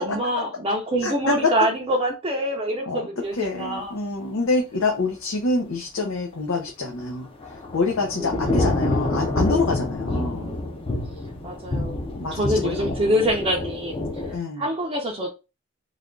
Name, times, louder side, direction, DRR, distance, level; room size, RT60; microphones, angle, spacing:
voice 1, 0.0-3.9 8.2-8.7 11.4-12.0 12.3-15.3, equal, 25° right, 0.5 m, -25 dB
voice 2, 1.0-1.5 2.9-3.1 3.3-10.5 12.2-12.9 14.3-14.7, left 3 dB, 75° left, 0.7 m, -26 dB
Thunder / Rain, 7.0-14.4, left 2 dB, 25° left, 0.5 m, -27 dB
3.3 x 2.3 x 3.7 m
head